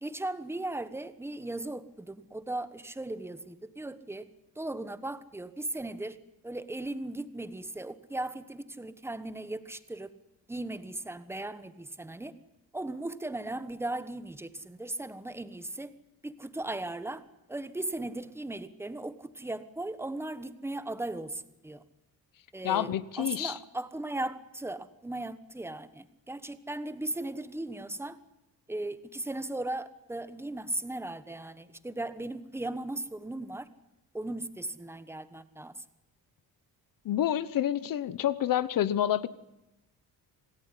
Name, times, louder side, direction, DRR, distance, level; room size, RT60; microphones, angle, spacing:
voice 1, 0.0-4.3 4.5-6.2 6.4-10.1 10.5-12.3 12.7-15.9 16.2-17.2 17.5-21.8 22.5-28.2 28.7-33.7 34.1-35.8, right 2 dB, 5° right, 13 dB, 1.1 m, -37 dB
voice 2, 22.6-23.5 37.0-39.3, left 11 dB, 60° left, 17 dB, 1.1 m, -28 dB
27.0 x 18.0 x 9.9 m, 0.92 s
cardioid pair, 175°, 38 cm